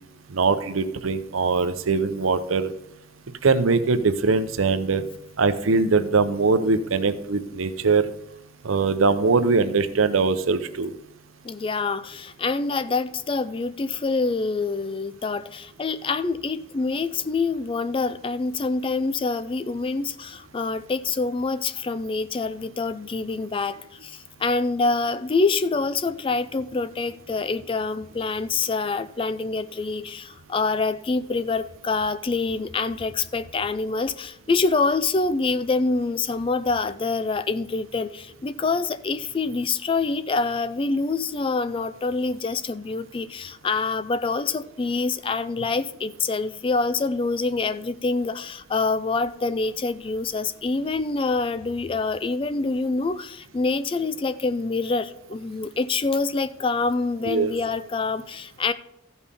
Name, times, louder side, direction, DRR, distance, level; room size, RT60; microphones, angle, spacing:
voice 1, 0.3-2.7 3.4-5.0 5.4-8.1 8.6-10.9 57.3-57.5, right 4 dB, 90° right, 0.7 m, -21 dB
voice 2, 11.4-58.7, left 3 dB, 25° left, 0.3 m, -26 dB
14.0 x 5.5 x 4.1 m
head